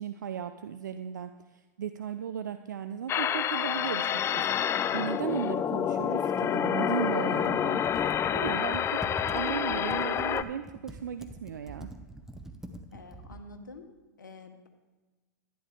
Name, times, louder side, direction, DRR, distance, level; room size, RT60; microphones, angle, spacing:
voice 1, 0.0-4.5 4.9-9.0 9.3-11.9, right 8 dB, 80° right, 9 dB, 0.4 m, -36 dB
sound 1, 3.1-10.4, left 9 dB, 25° left, 0.4 m, -28 dB
Computer keyboard, 7.3-13.5, right 2 dB, 5° right, 0.9 m, -44 dB
voice 2, 12.9-13.9 14.2-14.7, left 3 dB, 85° left, 6 dB, 1.2 m, -47 dB
11.0 x 11.0 x 3.6 m, 1.2 s
hypercardioid pair, 95°, 10 cm